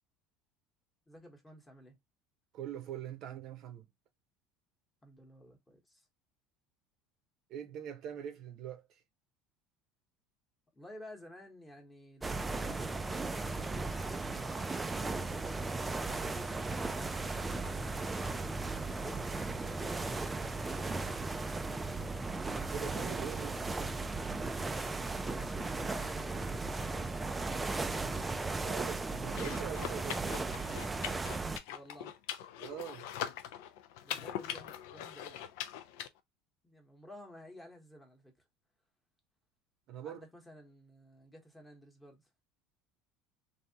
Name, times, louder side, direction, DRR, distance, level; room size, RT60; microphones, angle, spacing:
voice 1, 1.1-2.0 5.0-6.1 10.7-13.6 14.1-15.7 16.1-18.1 18.8-22.2 25.3-27.3 31.7-32.2 34.0-35.4 36.6-38.3 40.0-42.2, left 1 dB, 10° left, 1.0 m, -53 dB
voice 2, 2.5-3.9 7.5-9.0 22.7-23.8 28.6-30.5 32.6-33.1 39.9-40.3, right 9 dB, 50° right, 0.7 m, -43 dB
sound 1, 12.2-31.6, right 3 dB, 10° right, 0.3 m, -36 dB
sound 2, 29.3-36.1, left 10 dB, 80° left, 0.4 m, -42 dB
3.3 x 2.6 x 2.7 m
cardioid pair, 150°, 0 cm